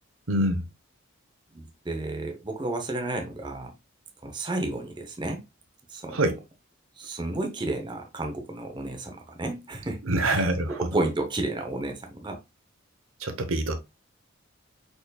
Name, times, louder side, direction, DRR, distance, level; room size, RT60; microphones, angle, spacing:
voice 1, 0.3-0.6 6.1-6.4 10.0-10.9 13.2-13.8, right 1 dB, 75° right, 0.9 m, -25 dB
voice 2, 1.5-3.7 4.2-5.4 5.9-6.2 7.0-10.4 10.8-12.4, right 2 dB, 20° right, 0.7 m, -32 dB
5.0 x 4.5 x 2.3 m
head